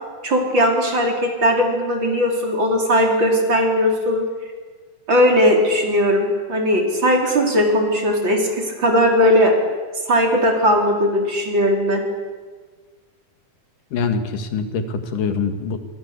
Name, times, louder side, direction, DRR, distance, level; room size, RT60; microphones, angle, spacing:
voice 1, 0.2-4.2 5.1-9.5 10.1-12.0, equal, 35° right, 2 dB, 4.7 m, -18 dB
voice 2, 13.9-15.8, left 5 dB, 85° left, 8 dB, 3.6 m, -24 dB
27.0 x 25.0 x 8.4 m, 1.5 s
omnidirectional pair, 3.6 m